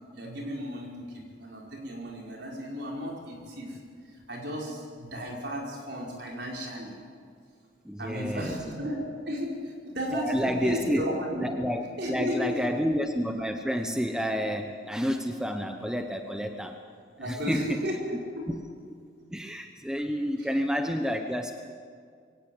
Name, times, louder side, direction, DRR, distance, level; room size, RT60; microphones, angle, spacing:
voice 1, 0.1-3.8 4.1-7.0 8.0-11.5 12.0-12.8 17.2-18.5 20.4-20.5, equal, 60° right, -1 dB, 5.2 m, -34 dB
voice 2, 7.8-8.6 10.1-11.1 11.4-16.8 17.2-17.8 18.5-18.6 18.9-19.0 19.3-21.5, equal, 5° right, 5 dB, 0.9 m, -29 dB
22.5 x 18.0 x 7.9 m, 2.2 s
head